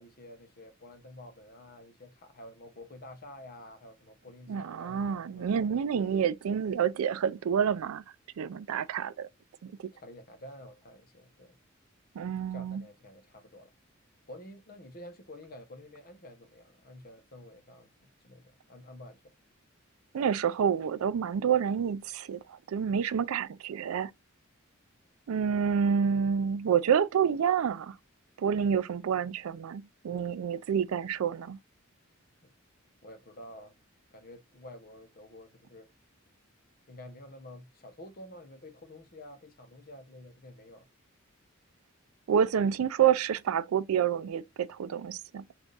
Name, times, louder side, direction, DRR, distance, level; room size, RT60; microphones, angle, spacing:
voice 1, 0.0-5.6 9.9-11.6 12.5-13.7 14.3-17.9 18.2-19.2 32.4-32.5 33.0-33.8 34.1-35.9 36.9-40.9, left 1 dB, 45° left, 0.8 m, -49 dB
voice 2, 4.5-8.0 8.4-9.3 9.6-9.9 12.2-12.8 20.1-24.1 25.3-28.0 28.4-31.6 42.3-45.4, right 7 dB, 85° right, 0.4 m, -28 dB
3.4 x 2.5 x 3.8 m
head